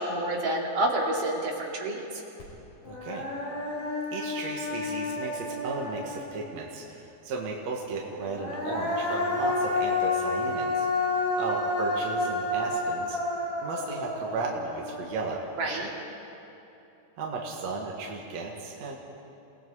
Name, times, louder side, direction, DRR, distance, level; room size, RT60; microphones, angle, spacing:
voice 1, 0.0-2.2 15.6-15.9, right 1 dB, 75° right, -2 dB, 4.2 m, -28 dB
Human voice, 2.4-2.5 2.8-6.5 8.2-15.4, left 2 dB, 60° left, 6.0 m, -30 dB
voice 2, 2.9-3.3 4.1-10.9 11.4-13.2 13.6-15.5 17.2-18.9, right 3 dB, 60° right, -2 dB, 2.8 m, -35 dB
29.5 x 19.0 x 4.9 m, 3.0 s
omnidirectional pair, 3.8 m